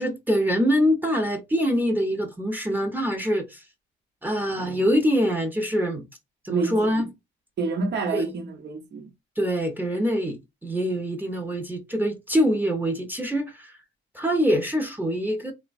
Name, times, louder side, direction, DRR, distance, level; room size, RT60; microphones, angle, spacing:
voice 1, 0.0-3.6 4.2-6.0 6.4-7.1 8.1-8.3 9.4-13.7 14.1-15.5, equal, 10° right, 0.7 m, -24 dB
voice 2, 6.5-7.1 7.6-9.1, right 4 dB, 60° right, 0.8 m, -28 dB
3.1 x 2.2 x 2.5 m
cardioid pair, 90°, 20 cm